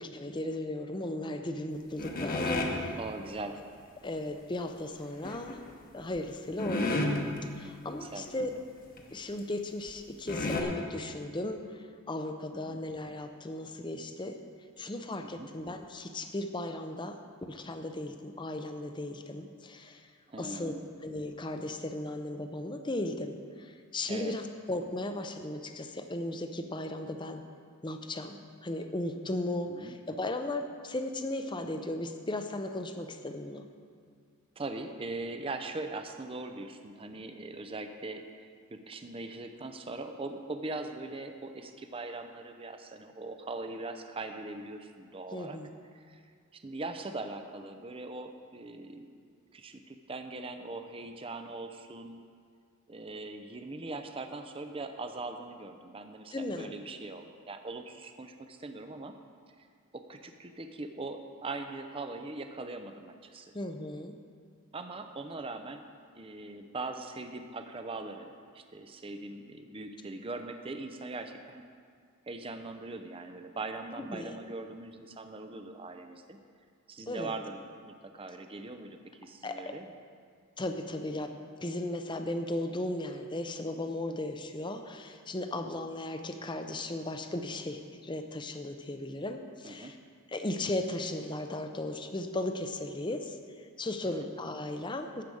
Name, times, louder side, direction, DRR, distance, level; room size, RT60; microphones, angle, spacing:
voice 1, 0.0-3.0 4.0-5.6 5.9-7.1 7.5-8.5 9.1-14.4 14.8-20.1 20.4-20.7 21.0-27.4 27.8-33.6 45.3-45.7 56.3-56.7 63.5-64.2 74.0-74.4 77.1-77.3 79.4-79.8 80.6-90.0 90.3-95.2, left 1 dB, 20° left, 6 dB, 0.6 m, -36 dB
sound 1, 2.0-2.8 5.2-5.6 6.2-6.3 6.6-7.4 7.9-8.0 8.3-8.4 9.0-9.1 9.9-10.0 10.3-10.6, left 2 dB, 40° left, 1.1 m, -31 dB
voice 2, 3.0-3.6 8.0-8.6 12.5-12.8 15.2-15.5 20.3-20.9 24.1-24.4 29.7-30.0 34.6-45.6 45.9-46.2 46.5-49.1 49.5-52.2 52.9-59.1 59.6-59.7 59.9-63.5 64.7-65.8 66.2-71.6 72.3-76.4 76.9-79.9 89.6-89.9 94.2-94.3, right 2 dB, 25° right, 6 dB, 0.6 m, -41 dB
12.5 x 5.1 x 8.5 m, 2.2 s
head